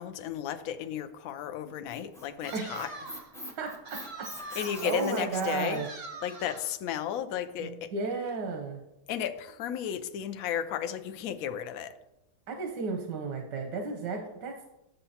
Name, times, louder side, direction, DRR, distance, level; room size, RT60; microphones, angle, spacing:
voice 1, 0.0-2.9 4.6-5.9 6.2-7.9 9.1-12.0, left 9 dB, 70° left, 10 dB, 0.9 m, -34 dB
Squeak, 1.6-5.9, equal, 5° left, 0.5 m, -44 dB
sound 1, 2.4-3.3 3.9-5.1 5.7-6.8, right 2 dB, 35° right, 0.8 m, -44 dB
voice 2, 2.5-6.0 7.6-8.8 12.5-14.7, right 4 dB, 85° right, 2 dB, 1.6 m, -34 dB
10.0 x 6.8 x 2.8 m, 0.90 s
omnidirectional pair, 1.8 m